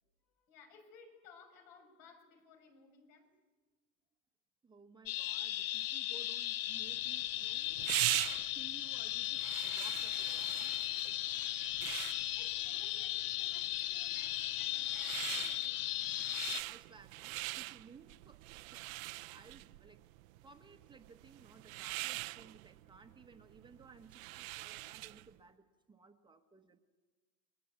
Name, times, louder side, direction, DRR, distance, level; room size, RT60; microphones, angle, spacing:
voice 1, 0.2-3.3 12.4-16.3, left 5 dB, 70° left, 5 dB, 6.7 m, -60 dB
voice 2, 4.6-7.7 8.5-10.7 11.0-11.6 16.6-18.9 19.3-20.0 20.4-26.8, right 4 dB, 10° right, 5 dB, 1.1 m, -59 dB
sound 1, 5.1-16.6, left 15 dB, 50° left, 0.8 m, -37 dB
sound 2, 6.8-25.3, right 21 dB, 75° right, 0.8 m, -42 dB
29.5 x 23.0 x 8.3 m, 1.3 s
supercardioid pair, 155°, 41 cm